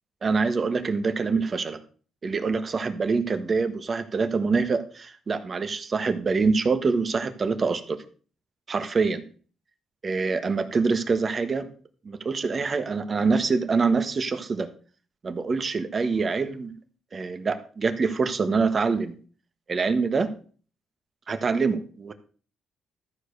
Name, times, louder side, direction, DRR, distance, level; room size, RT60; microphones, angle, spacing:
voice 1, 0.2-1.8 2.2-8.0 8.7-9.3 10.0-11.7 12.0-14.7 15.2-16.7 17.1-19.2 19.7-20.3 21.3-22.1, right 4 dB, 40° right, 10 dB, 1.3 m, -25 dB
13.0 x 4.9 x 6.6 m, 0.42 s
cardioid pair, 90°, 0 cm